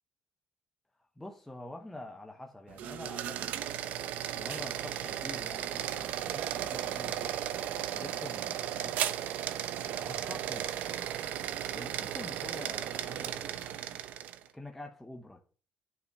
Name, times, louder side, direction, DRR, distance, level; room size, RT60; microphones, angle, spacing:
voice 1, 1.2-3.6 4.3-9.0 10.0-10.7 11.7-13.9 14.5-15.4, left 1 dB, 5° left, 0.9 m, -46 dB
sound 1, 2.7-14.5, right 11 dB, 70° right, 0.8 m, -35 dB
9.5 x 5.5 x 6.5 m
cardioid pair, 140°, 3 cm